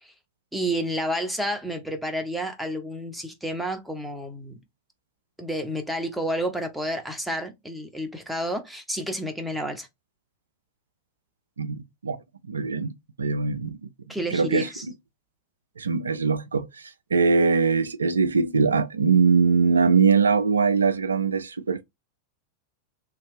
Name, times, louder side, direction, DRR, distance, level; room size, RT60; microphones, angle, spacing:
voice 1, 0.5-4.6 5.4-9.9 14.1-14.8, equal, ahead, 0.7 m, -30 dB
voice 2, 11.6-12.2 12.5-12.9 13.2-13.9 14.3-14.7 15.8-21.8, right 5 dB, 75° right, 0.3 m, -22 dB
2.9 x 2.4 x 3.2 m
figure-of-eight pair, 90°, 0 cm